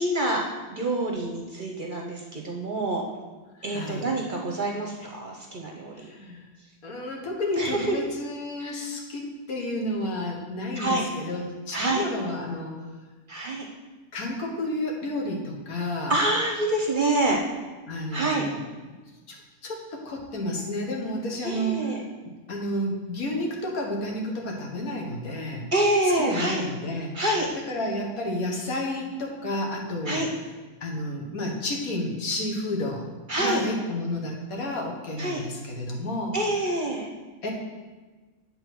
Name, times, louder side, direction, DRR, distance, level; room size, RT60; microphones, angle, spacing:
voice 1, 0.0-3.1 3.6-6.0 7.6-8.0 8.6-8.8 10.8-11.0 11.7-12.0 13.3-13.7 16.1-17.4 18.1-18.5 21.4-22.0 25.7-26.6 27.1-27.5 30.1-30.3 33.3-33.6 35.2-35.4 36.3-37.1, right 1 dB, 45° right, 0 dB, 0.8 m, -26 dB
voice 2, 3.6-4.1 6.0-6.4 6.8-12.8 14.1-16.2 17.9-18.6 19.3-22.0 22.5-25.7 26.0-27.1 27.6-30.2 30.8-33.0 33.4-36.3 37.4-37.5, left 1 dB, 75° left, 0 dB, 1.7 m, -31 dB
8.8 x 3.7 x 6.0 m, 1.3 s
omnidirectional pair, 1.5 m